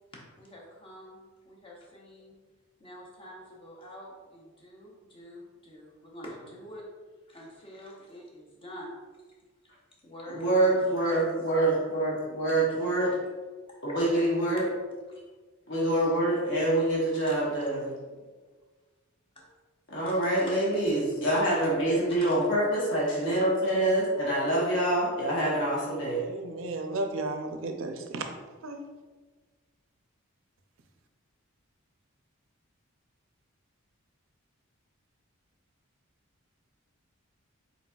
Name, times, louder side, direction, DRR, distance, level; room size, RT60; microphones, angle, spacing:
voice 1, 0.4-2.3 2.8-6.8 7.3-8.9 10.0-11.4 11.8-11.9 12.5-12.6 13.0-13.1 13.7-14.3 15.1-15.2 17.3-18.2 19.4-19.5 20.0-20.6 22.2-22.4 22.7-22.8, equal, 25° left, -3 dB, 0.7 m, -47 dB
voice 2, 10.3-13.1 13.8-14.6 15.7-17.9 19.9-26.2, right 1 dB, 55° left, -6 dB, 1.1 m, -26 dB
voice 3, 26.2-28.2 28.6-28.9, right 2 dB, 60° right, 5 dB, 0.4 m, -34 dB
4.0 x 4.0 x 2.3 m, 1.4 s
head